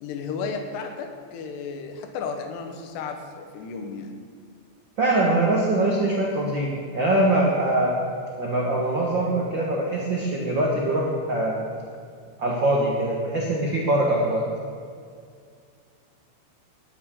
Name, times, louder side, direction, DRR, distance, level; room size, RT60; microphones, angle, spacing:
voice 1, 0.0-4.2, left 5 dB, 75° left, 4 dB, 3.2 m, -33 dB
voice 2, 5.0-8.0 8.4-11.6 12.4-14.4, right 1 dB, 60° right, -3 dB, 1.2 m, -23 dB
19.0 x 12.0 x 3.8 m, 2.2 s
omnidirectional pair, 5.0 m